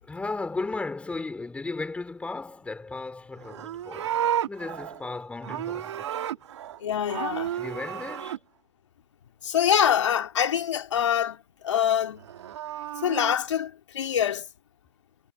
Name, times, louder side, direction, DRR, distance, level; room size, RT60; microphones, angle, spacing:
voice 1, 0.0-4.2 4.5-6.1 7.5-8.4, left 3 dB, 10° left, 3.9 m, -35 dB
Livestock farm animals working animals, 3.4-6.8 7.1-8.4 12.2-13.3, right 11 dB, 70° right, 1.7 m, -32 dB
voice 2, 6.8-7.5 9.4-12.2 13.0-14.5, left 9 dB, 80° left, 2.7 m, -25 dB
hypercardioid pair, 125°, 15 cm